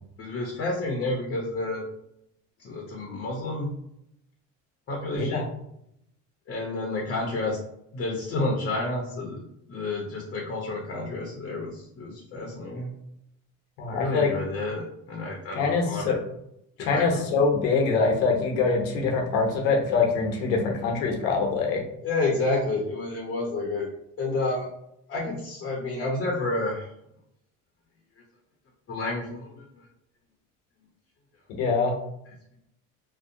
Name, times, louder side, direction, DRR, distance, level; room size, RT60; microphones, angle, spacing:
voice 1, 0.2-1.9 2.6-3.7 4.9-5.5 6.5-7.6 7.9-9.4 9.7-12.9 13.9-16.2 16.8-17.2 22.0-23.9 24.2-24.7 25.1-26.9 28.9-29.9, left 2 dB, 35° left, -1 dB, 0.7 m, -30 dB
voice 2, 5.1-5.5 13.8-14.3 15.5-16.2 16.8-21.8 31.5-31.9, left 4 dB, 85° left, 1 dB, 0.8 m, -24 dB
2.6 x 2.1 x 2.6 m, 0.77 s
supercardioid pair, 100°, 33 cm